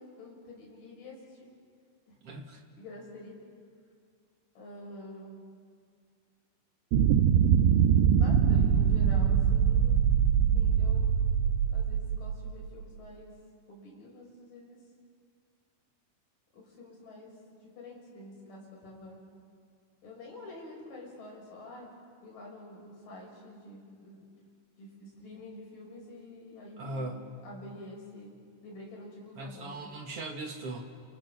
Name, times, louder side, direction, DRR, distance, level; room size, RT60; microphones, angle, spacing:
voice 1, 0.0-1.5 2.1-2.2 2.8-3.4 4.5-5.4 8.2-10.0 10.5-11.2 11.7-13.3 13.7-14.8 16.5-17.3 17.6-19.2 20.0-21.9 22.2-24.2 24.8-27.1 27.4-28.3 28.6-29.9, left 1 dB, 50° left, -2 dB, 7.9 m, -47 dB
voice 2, 2.2-2.6 26.8-27.3 29.4-30.8, right 2 dB, 55° right, 3 dB, 1.8 m, -39 dB
sound 1, 6.9-12.7, right 8 dB, 90° right, 3.2 m, -23 dB
29.0 x 28.5 x 6.1 m, 2.1 s
omnidirectional pair, 5.1 m